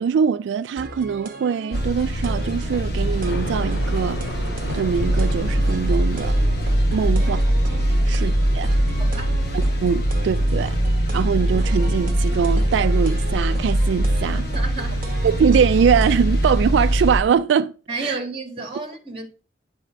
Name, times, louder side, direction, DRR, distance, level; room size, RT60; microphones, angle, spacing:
voice 1, 0.0-6.3 6.9-7.4 8.1-8.7 9.8-10.8 11.1-14.4 15.2-17.7 18.0-18.2, right 6 dB, 85° right, 0.3 m, -22 dB
sound 1, 0.8-16.5, right 2 dB, 50° right, 0.9 m, -37 dB
sound 2, 1.7-17.2, right 1 dB, 60° left, 1.3 m, -22 dB
Thunder, 2.8-12.5 13.1-13.2 13.6-13.7 14.0-14.1, left 1 dB, 85° left, 1.9 m, -37 dB
voice 2, 9.0-9.4 14.3-15.1 17.9-19.3, right 3 dB, 30° right, 1.9 m, -33 dB
9.9 x 4.2 x 5.1 m
head